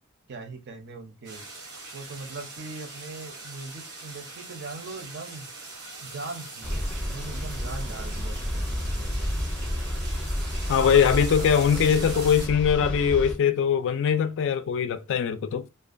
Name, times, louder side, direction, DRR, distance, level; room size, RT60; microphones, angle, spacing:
voice 1, 0.3-1.4 1.9-5.5 6.0-9.3 10.8-12.3, right 3 dB, 50° right, 0.5 m, -40 dB
sound 1, 1.2-12.5, right 3 dB, 85° right, 0.8 m, -41 dB
sound 2, 6.6-13.3, equal, 5° left, 0.6 m, -30 dB
voice 2, 10.7-15.7, left 7 dB, 60° left, 0.3 m, -22 dB
2.4 x 2.2 x 2.4 m
head